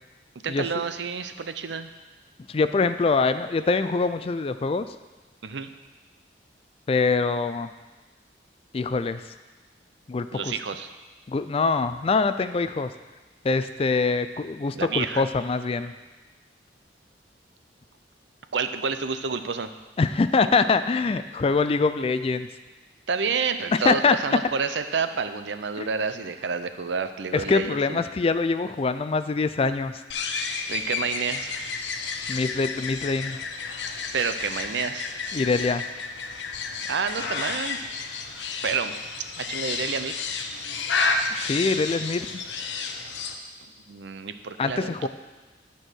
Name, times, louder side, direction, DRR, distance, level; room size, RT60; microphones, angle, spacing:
voice 1, 0.4-1.9 5.4-5.7 10.3-10.9 14.7-15.2 18.5-19.7 23.1-28.0 30.7-31.5 34.1-35.1 36.9-37.8 38.6-38.9 39.4-40.1 43.9-45.1, right 5 dB, 75° right, 9 dB, 0.6 m, -29 dB
voice 2, 2.5-4.9 6.9-7.7 8.7-9.2 10.1-10.6 11.3-12.9 13.4-15.9 20.0-22.5 23.8-24.2 25.8-25.9 27.3-30.0 32.3-33.4 35.3-35.8 41.4-42.3 44.6-45.1, left 4 dB, 30° left, 11 dB, 0.3 m, -24 dB
sound 1, 30.1-43.4, left 4 dB, 75° left, 0.8 m, -31 dB
11.5 x 4.6 x 6.3 m, 1.2 s
head